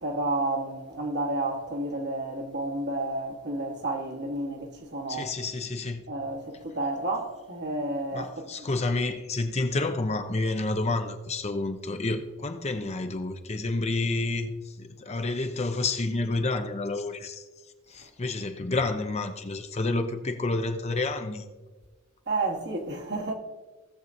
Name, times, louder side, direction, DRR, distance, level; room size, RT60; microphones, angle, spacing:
voice 1, 0.0-5.3 6.1-8.4 22.3-23.3, right 2 dB, 55° right, 1.4 m, -31 dB
voice 2, 5.1-6.0 8.1-17.4 17.9-21.4, left 2 dB, 30° left, 0.6 m, -29 dB
17.0 x 7.1 x 2.7 m
head